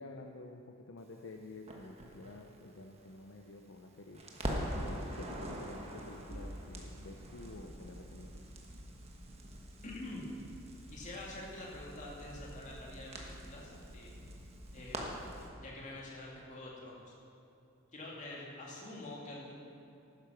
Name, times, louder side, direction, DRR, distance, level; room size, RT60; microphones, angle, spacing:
voice 1, 0.0-8.5, left 2 dB, 60° left, 3 dB, 0.7 m, -50 dB
Crackle, 1.7-3.8 4.1-15.5, right 1 dB, 30° right, 1.3 m, -44 dB
voice 2, 9.8-10.3 10.9-14.1 14.7-15.2 15.6-17.1 17.9-19.5, left 2 dB, 35° left, -4 dB, 2.4 m, -46 dB
12.0 x 9.7 x 5.9 m, 2.7 s
head